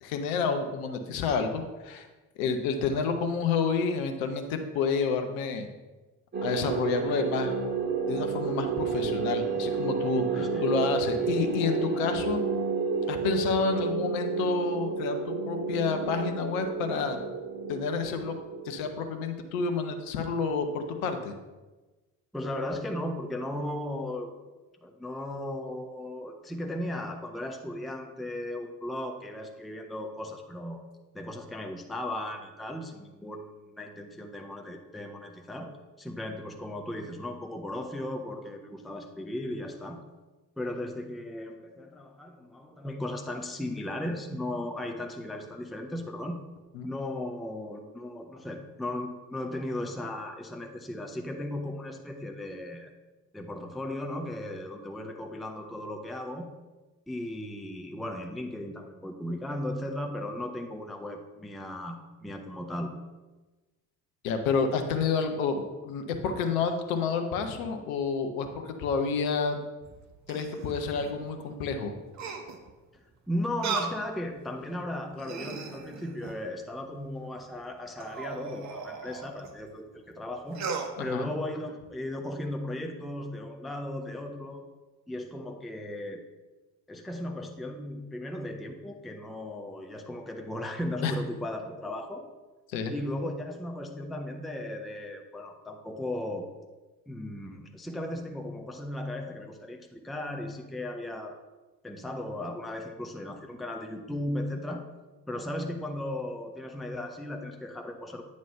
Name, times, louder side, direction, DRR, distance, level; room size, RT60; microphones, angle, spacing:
voice 1, 0.0-2.1 2.4-5.7 6.4-7.6 8.1-12.4 13.1-17.2 17.7-18.3 18.6-21.3 46.7-46.9 64.2-69.6 70.3-71.9 81.0-81.3 91.0-91.1 92.7-92.9, left 5 dB, 60° left, 6 dB, 0.9 m, -29 dB
sound 1, 6.3-19.1, right 5 dB, 20° right, 1.9 m, -30 dB
voice 2, 22.3-24.3 24.8-30.8 31.1-35.7 36.0-40.0 40.6-46.4 46.8-52.9 53.3-56.5 57.1-62.9 73.3-80.6 81.0-84.7 85.1-86.2 86.9-92.2 92.9-96.5 97.1-101.3 101.8-104.8 105.3-108.2, left 1 dB, ahead, 4 dB, 0.5 m, -36 dB
sound 2, 69.8-71.2 72.1-72.7 73.6-74.0 74.6-74.7 75.1-76.5 78.0-79.5 80.5-80.9, right 5 dB, 35° right, 0.9 m, -37 dB
9.1 x 3.1 x 5.6 m, 1.2 s
figure-of-eight pair, 55°, 47 cm